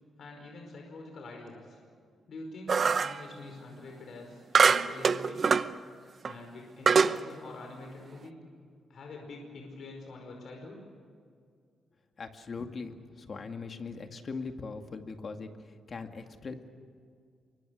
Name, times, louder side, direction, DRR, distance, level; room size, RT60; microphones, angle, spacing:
voice 1, 0.2-1.8 2.3-5.4 6.2-8.4 8.9-10.8, left 2 dB, 55° left, 1 dB, 5.1 m, -45 dB
sound 1, 2.7-3.2 4.6-5.7 6.2-6.3 6.9-7.2, right 5 dB, 40° right, 0.7 m, -23 dB
voice 2, 12.2-16.7, left 4 dB, 40° left, 5 dB, 2.2 m, -40 dB
28.0 x 24.0 x 6.5 m, 2.2 s
cardioid pair, 130°, 0 cm